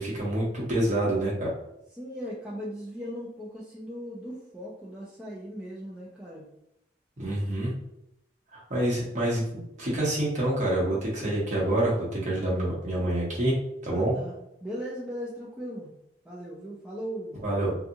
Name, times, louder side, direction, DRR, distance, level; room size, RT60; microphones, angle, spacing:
voice 1, 0.0-1.5 7.2-7.7 8.5-13.5 13.8-14.1 17.4-17.7, right 1 dB, 45° right, -6 dB, 1.1 m, -27 dB
voice 2, 2.0-6.5 13.9-14.4 14.6-15.9 16.2-17.3, equal, 5° right, -6 dB, 0.4 m, -38 dB
2.7 x 2.4 x 2.6 m, 0.82 s
head